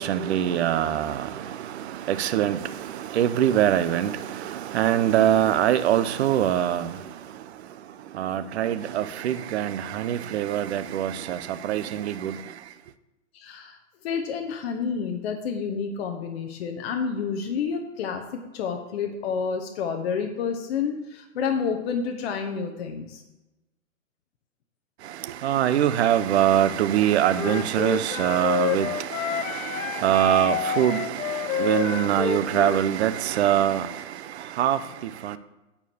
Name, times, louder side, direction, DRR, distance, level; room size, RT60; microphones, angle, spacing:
voice 1, 0.0-7.4 8.1-12.5 25.0-35.4, right 11 dB, 55° right, 0.7 m, -24 dB
voice 2, 13.3-23.2, left 6 dB, 50° left, 1.0 m, -29 dB
Wind instrument woodwind instrument, 27.4-32.8, left 9 dB, 85° left, 0.8 m, -29 dB
9.2 x 4.6 x 6.9 m
hypercardioid pair, 155°, 39 cm